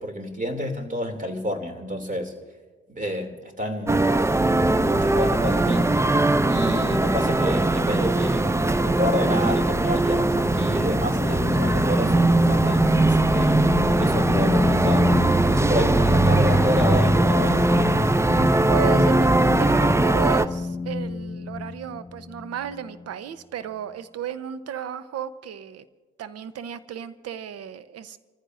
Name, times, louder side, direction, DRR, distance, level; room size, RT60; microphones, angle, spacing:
voice 1, 0.0-2.3 2.9-4.1 4.4-6.0 6.5-13.6 14.0-15.1 15.5-17.7, equal, 25° right, 5 dB, 2.8 m, -29 dB
sound 1, 3.9-20.5, right 2 dB, 10° right, 0.6 m, -20 dB
sound 2, 9.4-23.0, left 3 dB, 15° left, 4.6 m, -28 dB
voice 2, 18.7-19.3 19.6-25.8 26.2-28.2, right 8 dB, 55° right, 14 dB, 0.9 m, -33 dB
30.0 x 14.5 x 2.6 m, 1.4 s
hypercardioid pair, 55°, 30 cm